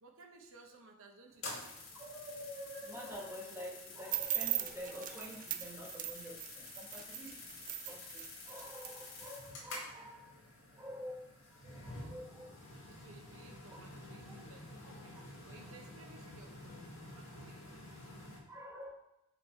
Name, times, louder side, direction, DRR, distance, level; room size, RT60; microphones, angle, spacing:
voice 1, 0.0-1.7 12.9-17.9, right 3 dB, 70° right, 2 dB, 0.9 m, -59 dB
sound 1, 1.3-18.4, left 2 dB, 70° left, 1.8 m, -50 dB
voice 2, 1.9-10.3 10.7-11.2 11.5-12.6 13.7-13.8 14.3-14.4 14.8-15.0 18.5-18.9, equal, 10° right, -4 dB, 1.8 m, -48 dB
sound 2, 4.1-9.3, right 12 dB, 35° right, 0.4 m, -39 dB
10.5 x 4.1 x 4.5 m, 0.88 s
head